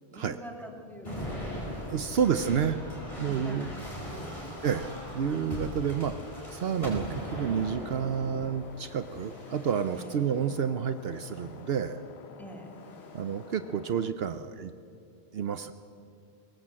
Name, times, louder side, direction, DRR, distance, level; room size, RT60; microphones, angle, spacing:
voice 1, 0.1-1.4 2.0-2.2 3.1-3.9 4.2-4.5 9.9-10.2 12.4-12.7, equal, ahead, 1 dB, 3.1 m, -46 dB
sound 1, 1.0-10.4 11.1-11.6 12.7-13.4, equal, 30° left, 5.2 m, -40 dB
sound 2, 1.5-14.1, left 7 dB, 85° left, 1.1 m, -50 dB
voice 2, 1.9-2.8 3.2-3.7 4.6-4.9 5.1-6.1 6.5-12.0 13.1-14.7 15.3-15.7, right 7 dB, 70° right, 11 dB, 0.9 m, -29 dB
22.5 x 19.5 x 7.6 m, 2.5 s
omnidirectional pair, 1.1 m